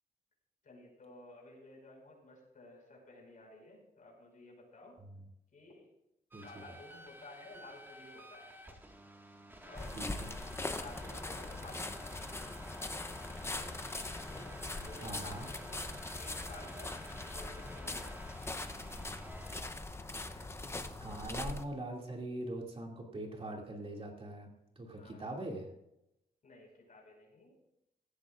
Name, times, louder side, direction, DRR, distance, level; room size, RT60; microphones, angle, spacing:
voice 1, 0.6-5.0 5.5-5.9 6.4-8.6 9.6-9.9 10.8-12.3 13.4-13.8 14.3-15.9 16.2-17.0 17.3-18.4 20.2-20.5 25.0-25.3 26.4-27.6, left 2 dB, 55° left, 0 dB, 5.4 m, -54 dB
sound 1, 6.3-19.6, right 1 dB, 15° right, 1.8 m, -52 dB
voice 2, 6.3-6.6 10.0-10.3 15.0-15.5 21.0-24.5 24.8-25.7, right 1 dB, 35° right, 0 dB, 2.5 m, -42 dB
sound 2, 9.8-21.6, left 2 dB, 15° left, 0.8 m, -41 dB
16.5 x 14.5 x 2.5 m, 0.84 s
wide cardioid pair, 145°, 16 cm